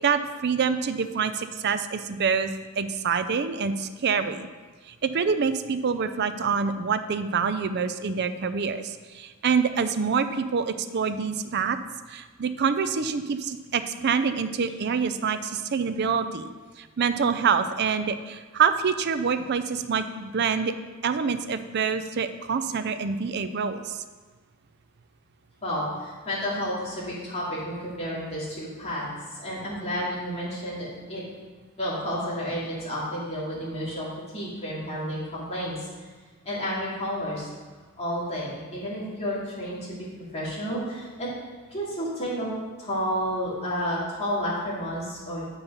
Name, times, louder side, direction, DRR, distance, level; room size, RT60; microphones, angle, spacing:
voice 1, 0.0-2.5 2.8-4.5 4.9-11.8 12.1-16.5 16.8-20.7 21.0-24.0, right 6 dB, 55° right, 10 dB, 0.5 m, -26 dB
voice 2, 25.6-31.2 31.8-34.1 34.3-36.1 36.4-37.5 38.0-41.3 41.7-42.5 42.8-45.6, equal, 30° left, -8 dB, 2.7 m, -31 dB
7.3 x 5.4 x 5.5 m, 1.4 s
head